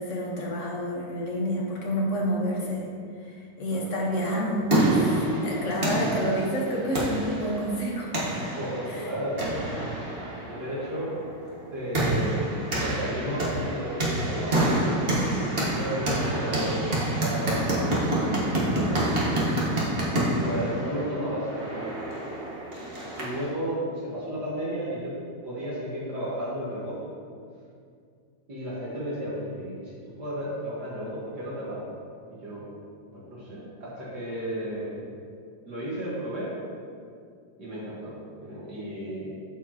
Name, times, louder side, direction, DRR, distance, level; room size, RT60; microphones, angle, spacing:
voice 1, 0.0-2.9 3.2-5.1 5.4-8.1 8.9-9.0, equal, 45° left, -3 dB, 1.5 m, -29 dB
sound 1, 4.3-23.5, right 1 dB, 35° right, 1.6 m, -28 dB
voice 2, 8.5-9.7 9.9-10.1 10.4-11.1 11.7-15.2 15.6-19.4 20.4-22.0 23.2-25.2 25.4-27.1 28.5-31.8 32.3-32.7 33.1-35.0 35.6-36.5 37.6-38.2 38.4-39.3, equal, 70° right, -9 dB, 2.2 m, -33 dB
13.5 x 4.6 x 2.9 m, 2.3 s
omnidirectional pair, 1.9 m